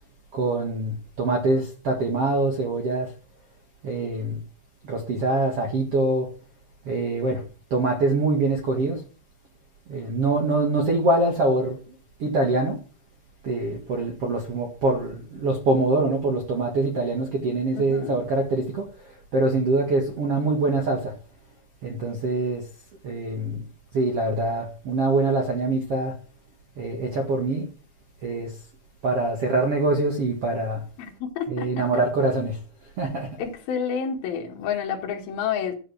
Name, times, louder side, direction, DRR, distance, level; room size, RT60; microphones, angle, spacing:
voice 1, 0.3-3.1 3.8-4.4 4.8-6.3 6.9-7.4 7.7-9.0 9.9-11.8 12.2-12.8 13.4-18.9 19.3-21.1 21.8-22.6 23.0-23.6 23.9-26.1 26.8-27.7 28.2-28.5 29.0-30.8 31.5-32.6 33.0-33.3, right 2 dB, 50° right, 1.8 m, -24 dB
voice 2, 17.7-18.2 31.0-31.9 33.4-35.7, left 7 dB, 60° left, 3.4 m, -29 dB
12.0 x 7.6 x 6.2 m
omnidirectional pair, 5.3 m